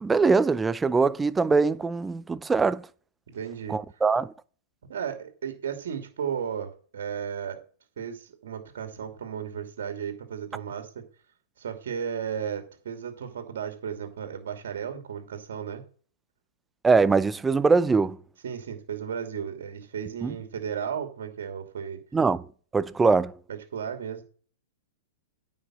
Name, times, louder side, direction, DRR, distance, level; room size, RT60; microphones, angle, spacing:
voice 1, 0.0-2.9 3.7-4.3 16.8-18.2 20.2-20.3 22.1-22.5 22.7-23.4, right 4 dB, 10° right, 0.5 m, -22 dB
voice 2, 3.3-3.8 4.9-7.6 8.0-10.9 11.6-15.8 18.4-22.0 23.5-24.2, right 8 dB, 70° right, 2.7 m, -34 dB
9.7 x 5.4 x 7.5 m
hypercardioid pair, 120°, 0 cm